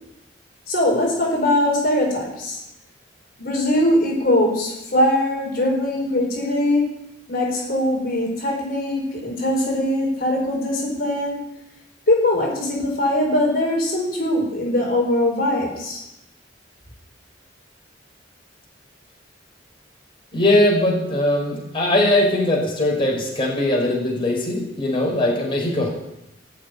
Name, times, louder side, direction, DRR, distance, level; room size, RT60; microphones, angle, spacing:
voice 1, 0.7-2.6 3.4-6.9 7.3-11.4 12.1-16.0, left 1 dB, 50° left, -1 dB, 4.5 m, -21 dB
voice 2, 20.3-25.9, left 1 dB, 30° left, -3 dB, 4.7 m, -20 dB
18.0 x 6.8 x 9.4 m, 0.87 s
head